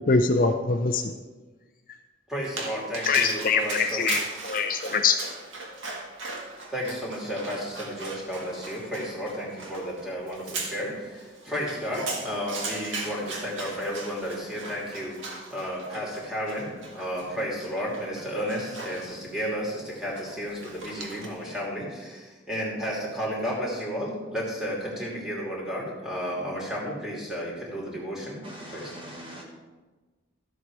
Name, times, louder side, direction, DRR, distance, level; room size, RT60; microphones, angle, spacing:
voice 1, 0.1-1.1 3.1-5.2, left 4 dB, 45° left, 6 dB, 0.5 m, -23 dB
voice 2, 2.3-4.2 6.7-15.2 15.5-28.4 28.7-28.9, equal, 5° right, -5 dB, 2.9 m, -32 dB
Dog, 2.4-21.5, right 3 dB, 90° right, 1.8 m, -39 dB
voice 3, 28.4-29.4, right 1 dB, 25° right, -1 dB, 1.4 m, -41 dB
13.0 x 7.7 x 4.8 m, 1.3 s
head